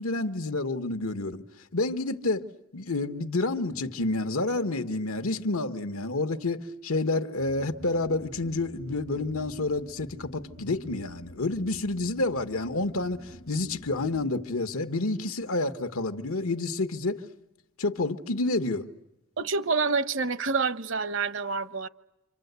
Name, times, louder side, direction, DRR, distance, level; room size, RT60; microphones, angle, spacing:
voice 1, 0.0-1.4 1.7-2.4 2.7-17.2 17.8-18.9, left 2 dB, 90° left, 1.3 m, -29 dB
sound 1, 7.4-14.2, equal, 60° left, 1.1 m, -48 dB
voice 2, 19.4-21.9, right 4 dB, 60° right, 1.0 m, -27 dB
28.0 x 25.5 x 8.2 m
head